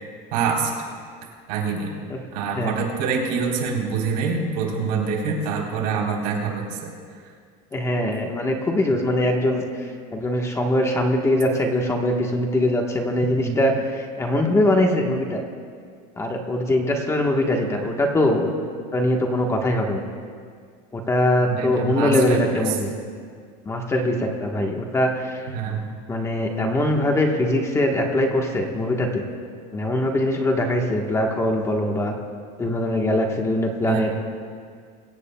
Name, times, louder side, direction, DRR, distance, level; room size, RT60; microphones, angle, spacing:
voice 1, 0.3-0.7 1.5-1.9 2.3-6.9 13.3-13.6 21.5-22.7 25.5-25.9 33.8-34.1, right 5 dB, 85° right, -1 dB, 3.9 m, -25 dB
voice 2, 7.7-9.6 10.1-15.4 16.2-18.5 18.9-20.0 20.9-22.9 23.6-25.5 26.1-29.2 29.7-32.1 32.6-34.1, left 1 dB, 15° left, 1 dB, 1.3 m, -22 dB
24.0 x 16.5 x 2.3 m, 2.1 s
cardioid pair, 160°, 20 cm